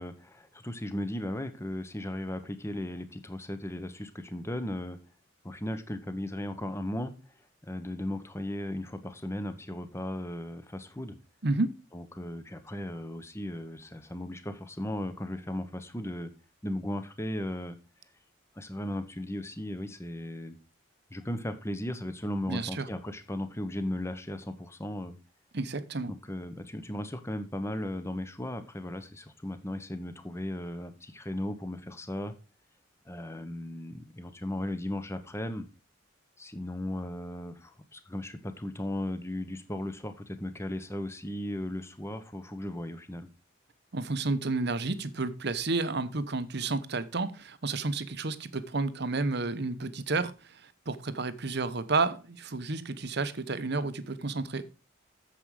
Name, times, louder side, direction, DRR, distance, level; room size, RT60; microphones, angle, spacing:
voice 1, 0.0-5.0 5.4-7.1 7.6-11.1 11.9-16.3 16.6-17.8 18.6-20.6 21.1-25.2 26.1-32.3 33.0-35.6 36.4-43.3, left 1 dB, 10° left, 10 dB, 1.0 m, -36 dB
voice 2, 11.4-11.7 22.5-22.9 25.5-26.1 43.9-54.6, right 3 dB, 50° right, 13 dB, 0.9 m, -31 dB
8.9 x 7.4 x 4.8 m, 0.31 s
head